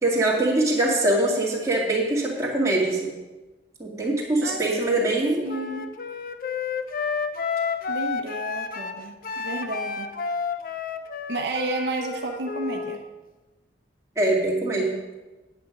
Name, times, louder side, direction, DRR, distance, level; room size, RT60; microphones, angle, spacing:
voice 1, 0.0-3.1 3.8-5.4 14.2-14.9, right 2 dB, 15° right, -4 dB, 2.2 m, -23 dB
voice 2, 4.4-5.9 7.9-10.1 11.3-13.0, right 2 dB, 75° right, 2 dB, 0.9 m, -32 dB
Wind instrument woodwind instrument, 5.5-13.0, left 5 dB, 50° left, 0.5 m, -31 dB
9.0 x 8.7 x 5.2 m, 1.2 s
head